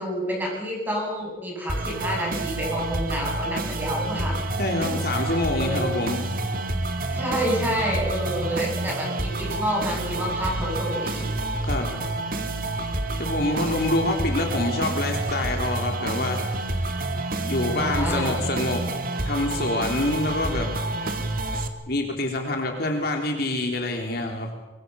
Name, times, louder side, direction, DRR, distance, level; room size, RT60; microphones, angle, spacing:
voice 1, 0.0-4.4 4.8-4.9 5.6-5.9 7.1-11.2 13.3-13.7 17.7-18.4, equal, 10° right, -2 dB, 7.8 m, -29 dB
sound 1, 1.7-21.7, right 2 dB, 45° right, 2.1 m, -28 dB
voice 2, 4.6-6.2 11.7-11.9 13.2-16.9 17.5-18.8 19.2-20.7 21.9-24.5, left 2 dB, 50° left, 3 dB, 3.3 m, -26 dB
23.5 x 23.5 x 6.9 m, 1.1 s
head